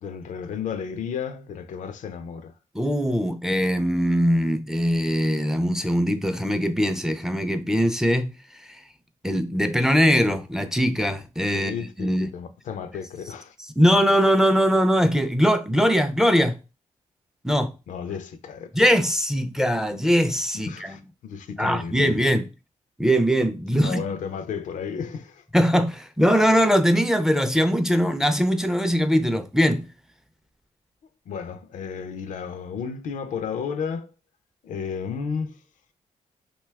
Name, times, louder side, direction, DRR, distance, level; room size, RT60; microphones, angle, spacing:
voice 1, 0.0-2.5 11.5-13.6 17.9-18.9 20.5-22.2 23.8-25.4 31.3-34.1 34.6-35.6, left 6 dB, 75° left, 0.4 m, -33 dB
voice 2, 2.7-8.3 9.2-12.3 13.8-16.6 17.4-17.7 18.7-21.0 21.6-22.5 23.0-24.0 25.5-29.9, equal, 5° right, 0.4 m, -21 dB
2.7 x 2.2 x 3.3 m
cardioid pair, 65°, 13 cm